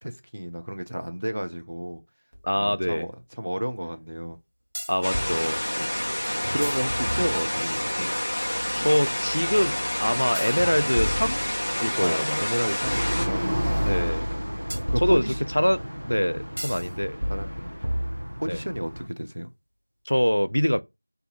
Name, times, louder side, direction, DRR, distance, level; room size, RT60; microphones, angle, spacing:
voice 1, 0.0-2.0 2.6-3.1 3.4-4.4 5.8-5.9 6.5-8.1 12.0-13.4 14.9-15.4 17.3-18.1 18.4-19.5, equal, 40° right, 0.4 m, -31 dB
sound 1, 2.3-2.4 4.7-5.4 6.4-7.7 10.3-12.0 14.7-15.7 16.6-16.9 17.2-18.6, equal, 55° right, 1.0 m, -32 dB
voice 2, 2.4-3.1 4.9-5.6 8.8-11.4 11.8-12.4 13.8-14.3 15.0-15.2 15.5-17.2 18.5-18.6 20.1-20.8, equal, 75° left, 0.3 m, -24 dB
sound 2, 5.0-13.3, equal, 15° left, 0.5 m, -28 dB
sound 3, 12.8-19.1, equal, 80° right, 0.7 m, -31 dB
2.6 x 2.4 x 3.7 m
figure-of-eight pair, 180°, 0 cm